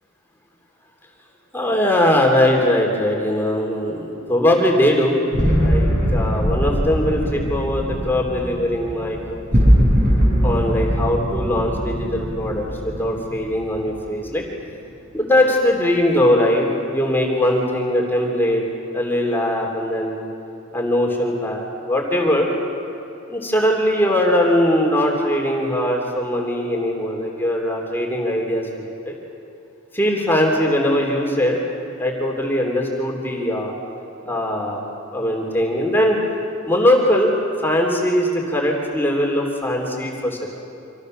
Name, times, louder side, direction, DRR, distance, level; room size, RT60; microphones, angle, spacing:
voice 1, 1.5-5.2 5.6-9.4 10.4-14.4 15.1-18.6 18.9-20.3 20.7-22.5 23.3-29.2 29.9-31.6 32.0-33.7 34.2-34.8 35.1-36.2 36.7-37.3 37.6-40.5, left 1 dB, 10° left, -1 dB, 3.2 m, -20 dB
sound 1, 5.3-14.2, equal, 35° right, 7.9 m, -21 dB
27.0 x 26.0 x 6.6 m, 2.9 s
head